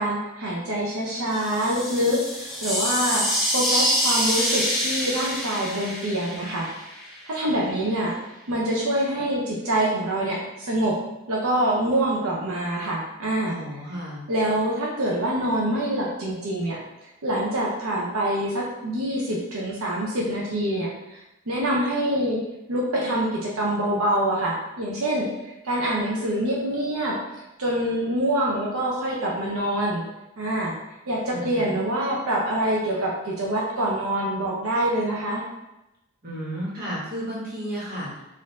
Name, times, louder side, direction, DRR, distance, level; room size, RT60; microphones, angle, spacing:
voice 1, 0.0-6.7 7.3-8.2 8.5-11.0 11.3-13.6 14.3-16.8 17.2-21.2 21.5-22.4 22.7-25.3 25.6-27.2 27.6-30.1 30.4-30.8 31.1-35.4, right 1 dB, 85° right, -4 dB, 0.8 m, -25 dB
sound 1, 1.3-7.2, equal, ahead, 0.7 m, -26 dB
voice 2, 13.5-14.2 31.3-31.8 36.2-38.2, equal, 45° right, -7 dB, 1.4 m, -33 dB
4.3 x 2.7 x 3.6 m, 0.94 s
head